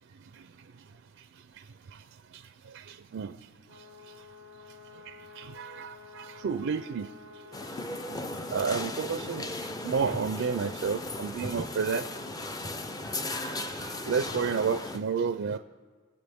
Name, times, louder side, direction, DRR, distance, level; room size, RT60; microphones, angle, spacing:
voice 1, 2.7-3.4 5.1-7.1 8.5-9.5 9.8-12.0 13.5-15.6, right 5 dB, 65° right, 10 dB, 0.4 m, -31 dB
sound 1, 3.6-8.5, left 4 dB, 90° left, 3.2 m, -50 dB
sound 2, 7.5-15.0, left 2 dB, 20° left, 0.5 m, -36 dB
23.0 x 8.0 x 3.5 m, 1.5 s
head